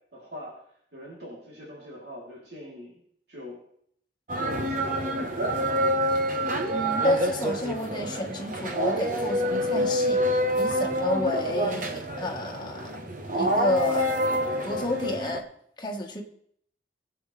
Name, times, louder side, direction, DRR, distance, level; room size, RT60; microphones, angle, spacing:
voice 1, 0.1-0.6 0.9-3.0 3.3-3.6 4.3-6.1, left 1 dB, 70° right, -6 dB, 3.3 m, -42 dB
sound 1, 4.3-15.4, equal, 50° right, 1.1 m, -27 dB
voice 2, 6.7-12.9 13.3-14.1 14.6-15.5 15.8-16.2, left 1 dB, 25° left, 1 dB, 1.4 m, -30 dB
21.0 x 7.9 x 3.3 m, 0.67 s
head